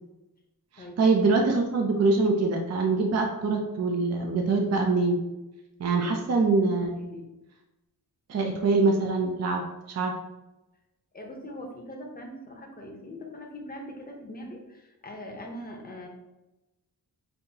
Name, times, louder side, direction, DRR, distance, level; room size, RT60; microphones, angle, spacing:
voice 1, 0.7-5.2 5.8-7.1 8.3-10.1, right 3 dB, 40° right, 2 dB, 0.5 m, -24 dB
voice 2, 6.8-7.3 11.1-16.1, left 1 dB, 25° left, 0 dB, 0.7 m, -41 dB
5.4 x 2.7 x 2.8 m, 1.0 s
wide cardioid pair, 155°, 39 cm